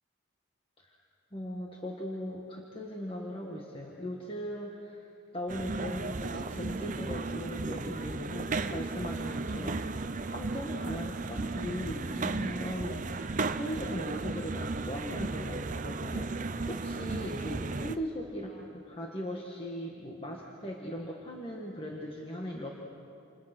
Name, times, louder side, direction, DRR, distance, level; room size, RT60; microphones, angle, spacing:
voice 1, 1.3-5.1 5.3-16.3 16.7-22.7, equal, 25° left, -1 dB, 1.8 m, -39 dB
sound 1, 5.5-18.0, right 3 dB, 35° right, 0.7 m, -35 dB
29.5 x 28.5 x 6.2 m, 2.8 s
head